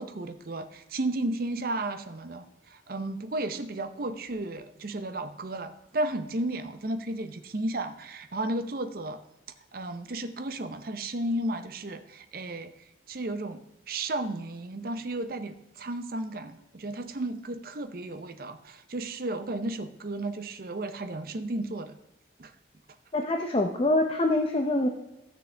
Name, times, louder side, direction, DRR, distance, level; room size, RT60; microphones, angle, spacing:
voice 1, 0.0-9.2 9.7-12.7 13.1-22.0 22.4-22.5, right 2 dB, 50° right, 8 dB, 0.7 m, -33 dB
voice 2, 23.1-24.9, left 2 dB, 30° left, 4 dB, 0.6 m, -25 dB
15.0 x 6.4 x 3.4 m, 0.93 s
head